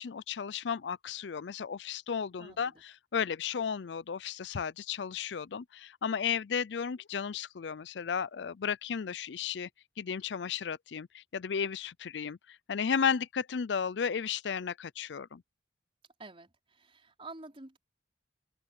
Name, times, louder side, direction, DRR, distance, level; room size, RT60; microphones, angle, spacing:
voice 1, 0.0-9.7 10.0-15.4, left 7 dB, 70° left, 0.5 m, -34 dB
voice 2, 2.4-2.8 16.2-17.8, right 3 dB, 30° right, 4.6 m, -49 dB
open air
head